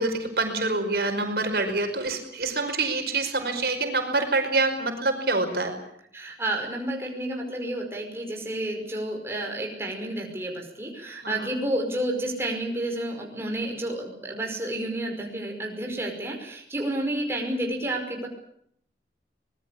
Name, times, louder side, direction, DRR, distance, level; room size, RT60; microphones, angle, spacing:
voice 1, 0.0-5.7 11.2-11.5, right 3 dB, 65° right, 5 dB, 5.1 m, -26 dB
voice 2, 6.1-18.3, right 1 dB, 15° right, 1 dB, 5.3 m, -30 dB
24.5 x 21.0 x 8.5 m, 0.69 s
head